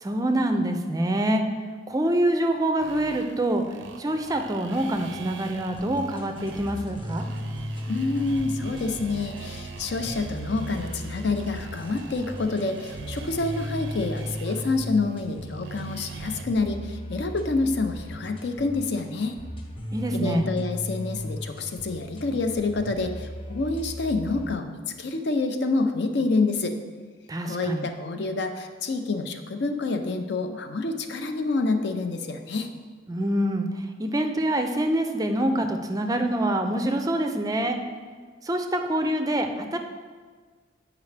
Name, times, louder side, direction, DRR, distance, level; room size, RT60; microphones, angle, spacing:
voice 1, 0.0-1.4 1.9-7.2 19.9-20.5 27.3-27.8 33.1-37.8 38.4-39.8, right 1 dB, 20° right, 5 dB, 0.4 m, -25 dB
sound 1, 2.8-16.4, right 5 dB, 90° right, 0.5 m, -42 dB
sound 2, 5.7-24.5, equal, 30° left, 0.9 m, -37 dB
voice 2, 7.9-19.4 20.1-26.8 27.4-32.7, left 3 dB, 65° left, 7 dB, 0.5 m, -27 dB
8.2 x 4.9 x 3.3 m, 1.5 s
head